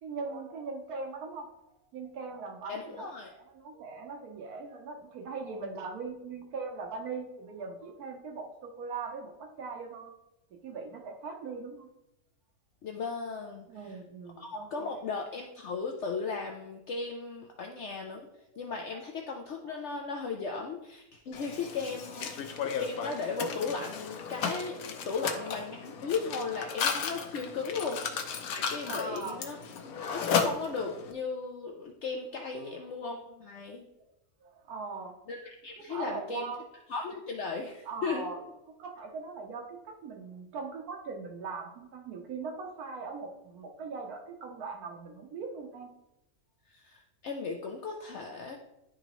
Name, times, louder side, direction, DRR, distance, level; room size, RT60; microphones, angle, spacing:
voice 1, 0.0-1.5 1.9-3.1 3.3-10.1 10.5-11.9 13.7-15.0 17.6-17.7 19.6-19.8 22.2-22.7 25.2-25.6 26.5-26.7 27.8-28.1 28.8-29.4 34.4-35.1 35.8-36.6 37.8-38.4 38.8-45.9, right 4 dB, 85° right, 1 dB, 1.4 m, -40 dB
voice 2, 2.7-3.3 12.8-14.0 14.4-18.3 18.6-29.6 29.8-33.9 35.3-36.5 36.9-38.2 46.7-48.6, left 4 dB, 60° left, 2 dB, 0.8 m, -36 dB
Mechanisms, 21.3-31.1, left 6 dB, 80° left, 1.2 m, -34 dB
11.0 x 3.8 x 3.0 m, 0.90 s
omnidirectional pair, 1.5 m